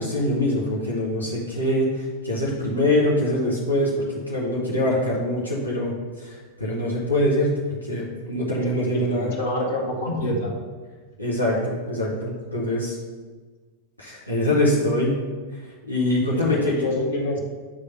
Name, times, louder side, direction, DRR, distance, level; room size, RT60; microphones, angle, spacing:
voice 1, 0.0-9.4 10.1-10.3 11.2-13.0 14.0-15.2 15.5-15.6 15.9-16.7, left 1 dB, 85° left, -6 dB, 1.4 m, -24 dB
voice 2, 8.6-10.5 16.3-17.4, left 1 dB, 60° left, -1 dB, 1.8 m, -27 dB
9.3 x 3.5 x 5.6 m, 1.4 s
figure-of-eight pair, 90°, 0 cm